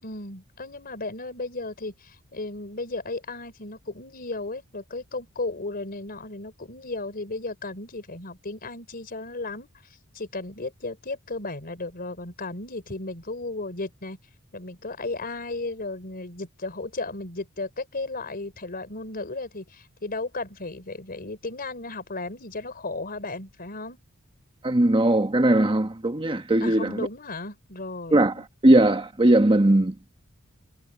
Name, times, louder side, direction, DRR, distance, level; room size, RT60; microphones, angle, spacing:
voice 1, 0.0-9.7 10.1-14.2 14.5-24.0 26.6-28.5, left 2 dB, 45° left, 4.1 m, -35 dB
voice 2, 24.6-27.1 28.1-29.9, right 1 dB, 25° right, 1.3 m, -19 dB
head